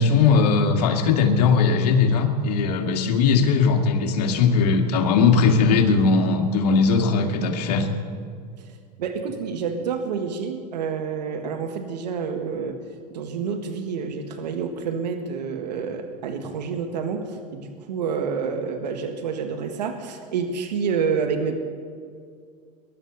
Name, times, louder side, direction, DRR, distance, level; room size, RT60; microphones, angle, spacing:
voice 1, 0.0-7.9, left 5 dB, 70° left, 3 dB, 2.2 m, -19 dB
voice 2, 9.0-12.8 13.1-21.5, right 6 dB, 80° right, 6 dB, 1.7 m, -28 dB
22.5 x 11.5 x 4.1 m, 2.2 s
hypercardioid pair, 110°, 21 cm